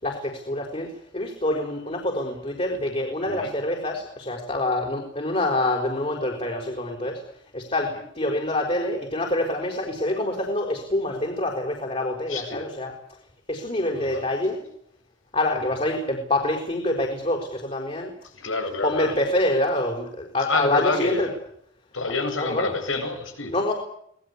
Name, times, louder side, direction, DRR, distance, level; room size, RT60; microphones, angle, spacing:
voice 1, 0.0-7.2 7.5-13.0 13.5-14.6 15.3-18.1 18.8-21.3 22.4-22.7 23.5-23.7, left 1 dB, 30° left, 1 dB, 5.3 m, -26 dB
voice 2, 12.3-12.7 13.9-14.3 18.4-19.1 20.5-21.3 21.9-23.5, left 3 dB, 85° left, 6 dB, 8.0 m, -28 dB
26.0 x 20.0 x 8.5 m, 0.70 s
head